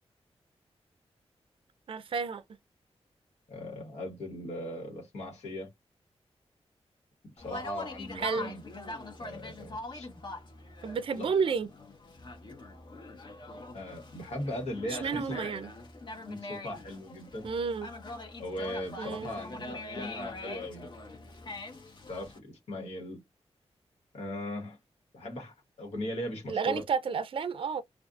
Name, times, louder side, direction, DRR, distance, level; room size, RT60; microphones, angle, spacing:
voice 1, 1.9-2.4 8.2-8.5 10.8-11.7 14.9-15.7 17.4-17.9 19.0-19.3 26.5-27.8, right 6 dB, 55° right, 0.4 m, -31 dB
voice 2, 3.5-5.7 7.4-8.6 9.2-10.1 11.1-11.3 13.7-15.4 16.2-17.5 18.4-20.9 22.1-23.2 24.1-24.8 25.1-26.8, left 1 dB, 85° left, 1.3 m, -38 dB
Conversation, 7.4-22.4, left 2 dB, 45° left, 0.9 m, -43 dB
2.5 x 2.3 x 2.3 m
cardioid pair, 80°, 11 cm